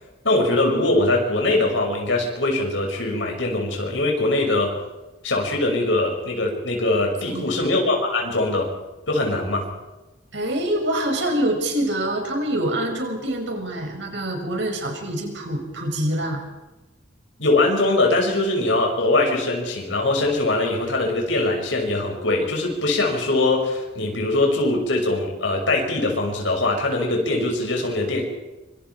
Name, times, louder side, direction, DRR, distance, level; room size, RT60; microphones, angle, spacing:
voice 1, 0.2-4.7 5.2-8.7 9.1-9.7 17.4-28.2, left 2 dB, 80° left, 1 dB, 5.8 m, -22 dB
voice 2, 7.3-7.7 10.3-16.4, right 1 dB, 70° right, 3 dB, 6.1 m, -25 dB
26.0 x 25.5 x 4.7 m, 1.1 s
head